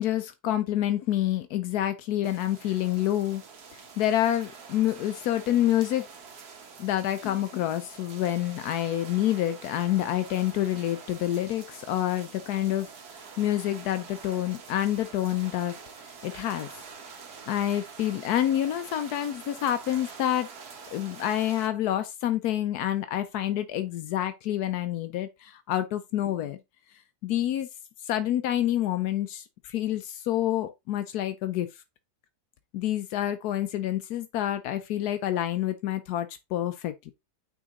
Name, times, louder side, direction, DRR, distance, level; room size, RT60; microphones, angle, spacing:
voice 1, 0.0-3.4 4.0-6.1 6.8-12.9 13.4-16.7 17.5-20.5 20.9-26.6 27.2-27.7 28.0-31.7 32.7-37.1, left 12 dB, 85° left, 1.2 m, -28 dB
sound 1, 2.2-21.7, right 5 dB, 90° right, 1.8 m, -46 dB
9.2 x 3.7 x 3.7 m
omnidirectional pair, 1.6 m